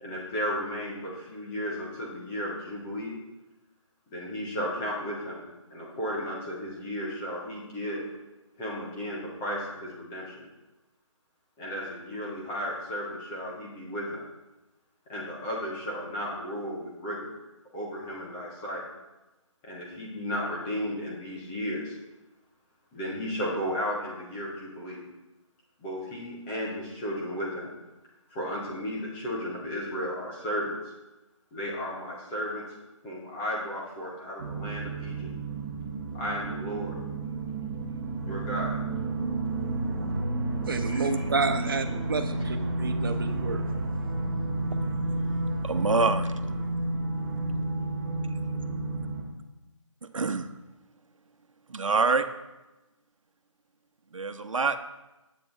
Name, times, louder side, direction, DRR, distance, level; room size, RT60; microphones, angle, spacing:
voice 1, 0.0-3.2 4.1-5.4 5.7-8.0 8.6-10.4 11.6-14.2 15.1-17.3 17.7-18.8 19.6-21.9 22.9-25.0 25.8-27.7 28.3-30.8 31.5-32.6 33.0-35.3 36.1-36.9 38.2-38.8 40.9-41.2, equal, ahead, -5 dB, 0.4 m, -34 dB
sound 1, 34.4-49.2, right 2 dB, 15° right, 1.3 m, -31 dB
voice 2, 40.7-43.7, right 4 dB, 45° right, 7 dB, 1.0 m, -30 dB
voice 3, 45.6-46.3 50.1-50.5 51.7-52.3 54.1-54.9, right 4 dB, 75° right, 9 dB, 1.0 m, -25 dB
10.0 x 8.5 x 3.9 m, 1.0 s
figure-of-eight pair, 165°, 17 cm